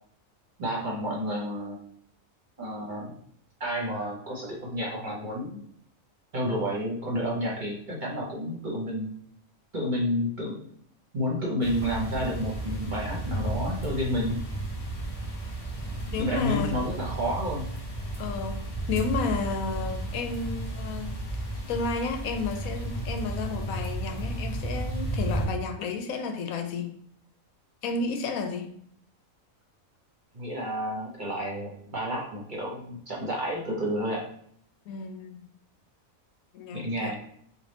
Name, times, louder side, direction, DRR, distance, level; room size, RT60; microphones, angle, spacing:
voice 1, 0.6-1.8 2.6-3.1 3.6-5.6 6.3-9.1 9.7-10.6 11.1-14.4 16.1-17.7 30.3-34.3 36.7-37.2, equal, 40° right, -3 dB, 1.0 m, -30 dB
sound 1, 11.6-25.5, right 1 dB, 30° left, 0.8 m, -33 dB
voice 2, 16.1-16.7 18.2-21.1 21.7-26.9 27.8-28.7 34.9-35.5 36.5-37.1, left 4 dB, 85° left, 6 dB, 1.0 m, -32 dB
4.0 x 2.5 x 3.3 m, 0.66 s
omnidirectional pair, 1.4 m